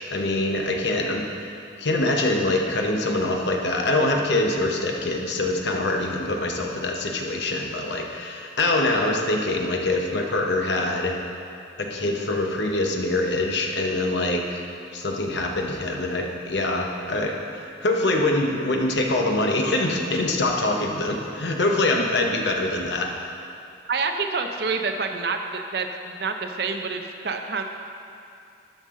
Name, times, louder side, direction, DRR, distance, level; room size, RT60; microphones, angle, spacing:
voice 1, 0.1-1.3 1.8-11.2 11.8-14.6 14.9-23.1, left 2 dB, 70° left, 1 dB, 0.9 m, -24 dB
voice 2, 23.9-27.6, right 4 dB, 55° right, 5 dB, 0.6 m, -27 dB
12.5 x 5.5 x 3.7 m, 2.5 s
head